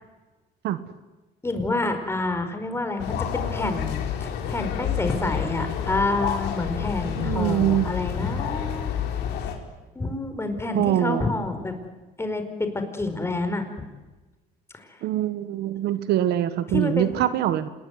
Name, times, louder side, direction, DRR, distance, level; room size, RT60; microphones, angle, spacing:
voice 1, 1.4-8.9 9.9-11.7 12.2-14.0 14.7-15.0 16.7-17.3, left 2 dB, 15° left, 7 dB, 4.9 m, -28 dB
sound 1, 3.0-9.5, left 8 dB, 80° left, 4.7 m, -29 dB
voice 2, 7.2-7.9 10.7-11.2 15.0-17.7, right 12 dB, 75° right, 12 dB, 1.6 m, -23 dB
27.5 x 20.5 x 9.6 m, 1.2 s
cardioid pair, 110°, 17 cm